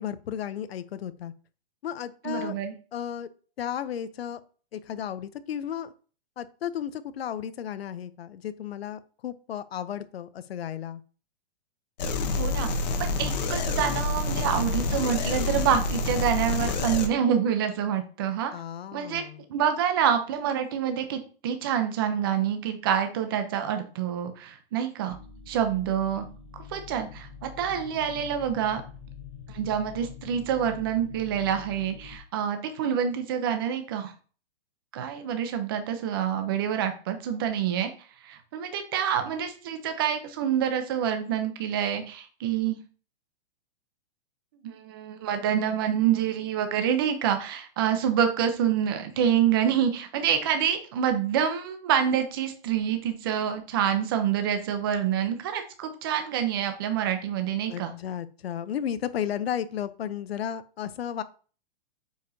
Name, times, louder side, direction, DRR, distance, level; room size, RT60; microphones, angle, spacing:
voice 1, 0.0-1.3 1.8-2.5 2.9-3.3 3.6-4.4 4.7-5.9 6.4-11.0 18.5-19.4 57.7-61.2, left 9 dB, 80° left, 0.8 m, -34 dB
voice 2, 2.2-2.7 12.4-12.7 13.0-18.5 18.9-19.2 19.5-25.2 25.5-26.3 26.5-28.8 29.5-34.1 34.9-37.9 38.2-42.8 44.6-57.9, right 9 dB, 25° right, 0.6 m, -27 dB
sound 1, 12.0-17.1, left 3 dB, 45° left, 1.1 m, -27 dB
sound 2, 25.1-32.2, left 7 dB, 15° left, 0.3 m, -45 dB
8.0 x 4.8 x 2.8 m
hypercardioid pair, 175°, 30 cm